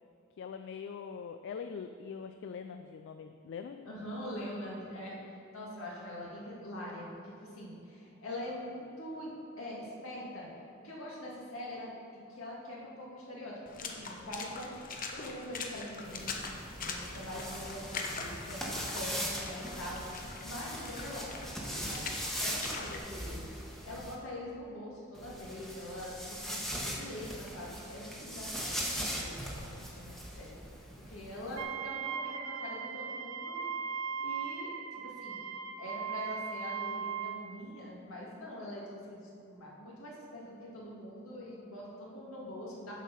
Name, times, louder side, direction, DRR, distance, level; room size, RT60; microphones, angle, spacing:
voice 1, 0.4-4.1, left 6 dB, 60° left, 7 dB, 0.3 m, -43 dB
voice 2, 3.9-5.2 5.5-10.5 10.8-11.9 12.3-23.5 23.8-30.6 31.1-33.6 34.2-35.4 35.8-42.9, left 1 dB, 75° left, -4 dB, 2.1 m, -44 dB
Water / Splash splatter, 13.7-23.0, left 4 dB, 40° left, 0.8 m, -43 dB
sound 1, 16.0-24.1 25.1-31.6, equal, ahead, 1.1 m, -40 dB
Wind instrument woodwind instrument, 31.6-37.5, right 6 dB, 90° right, 0.6 m, -38 dB
7.3 x 6.4 x 5.6 m, 2.6 s
head